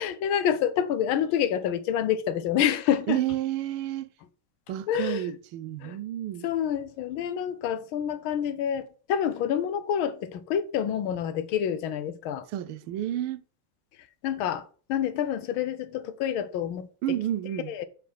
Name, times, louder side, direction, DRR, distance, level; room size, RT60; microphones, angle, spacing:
voice 1, 0.0-3.2 4.9-5.3 5.8-6.0 6.4-12.4 14.2-17.2 17.7-17.9, left 9 dB, 80° left, 1.6 m, -28 dB
voice 2, 3.1-4.1 4.7-6.5 12.5-13.4 17.0-17.7, right 12 dB, 85° right, 1.5 m, -30 dB
6.9 x 4.7 x 5.6 m
omnidirectional pair, 2.3 m